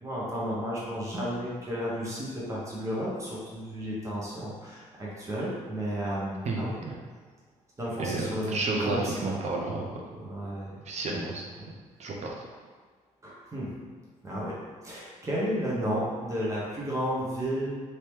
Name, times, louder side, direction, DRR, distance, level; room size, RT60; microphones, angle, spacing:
voice 1, 0.0-6.7 7.8-9.3 10.2-10.7 11.6-11.7 13.2-13.7 14.2-14.6 14.8-17.7, equal, 20° right, -7 dB, 1.1 m, -32 dB
voice 2, 6.4-6.9 8.0-10.0 10.9-11.5 12.0-12.3, right 3 dB, 55° right, -1 dB, 0.7 m, -31 dB
2.9 x 2.9 x 3.5 m, 1.5 s
supercardioid pair, 75°, 14 cm